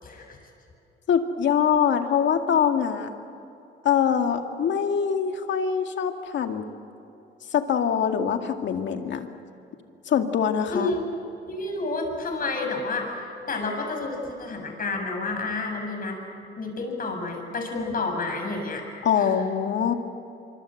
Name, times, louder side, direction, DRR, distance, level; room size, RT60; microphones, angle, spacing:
voice 1, 0.0-0.4 10.7-11.0 11.5-16.2 16.6-18.8 19.2-19.3, left 3 dB, 45° left, 3 dB, 7.2 m, -30 dB
voice 2, 1.1-3.1 3.8-6.6 7.5-9.3 10.1-10.9 19.0-19.9, left 8 dB, 65° left, 5 dB, 2.1 m, -23 dB
25.0 x 24.5 x 7.8 m, 2.7 s
cardioid pair, 90°, 20 cm